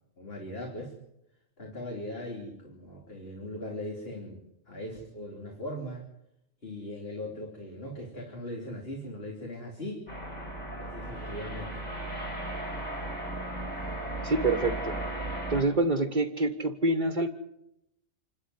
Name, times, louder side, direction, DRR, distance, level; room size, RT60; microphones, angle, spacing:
voice 1, 0.2-0.9 1.6-6.1 6.6-10.1 10.8-11.8, left 1 dB, 55° left, 0 dB, 3.6 m, -39 dB
sound 1, 10.1-15.6, right 1 dB, 35° left, 4.7 m, -36 dB
voice 2, 14.2-14.9 15.5-17.3, right 2 dB, 40° right, 8 dB, 1.4 m, -26 dB
27.0 x 13.0 x 9.7 m, 0.83 s
omnidirectional pair, 1.2 m